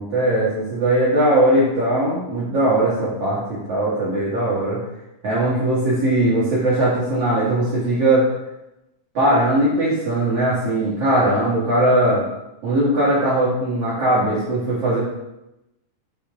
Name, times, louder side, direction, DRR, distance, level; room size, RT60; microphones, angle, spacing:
voice 1, 0.0-4.8 5.2-8.3 9.1-12.2 12.6-15.0, right 1 dB, 80° right, -9 dB, 1.3 m, -19 dB
6.5 x 5.5 x 3.5 m, 0.92 s
omnidirectional pair, 5.5 m